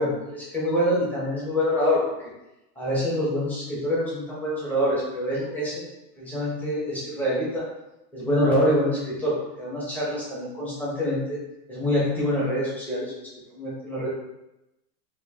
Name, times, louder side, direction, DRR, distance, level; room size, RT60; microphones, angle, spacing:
voice 1, 0.0-2.0 2.8-5.7 6.2-7.6 8.1-11.4 11.7-13.1 13.5-14.1, equal, 5° left, -8 dB, 1.0 m, -25 dB
4.6 x 2.7 x 2.8 m, 0.93 s
supercardioid pair, 155°, 48 cm